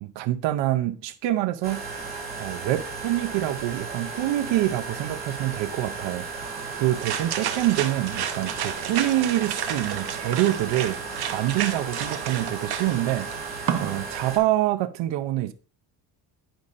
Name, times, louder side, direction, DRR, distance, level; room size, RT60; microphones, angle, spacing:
voice 1, 0.0-1.8 2.4-11.0 11.3-13.3 13.8-15.5, right 14 dB, 80° right, 0.7 m, -26 dB
sound 1, 1.6-14.4, right 4 dB, 20° right, 2.2 m, -35 dB
sound 2, 6.4-14.0, right 9 dB, 60° right, 1.0 m, -32 dB
10.0 x 5.3 x 2.5 m
cardioid pair, 130°, 44 cm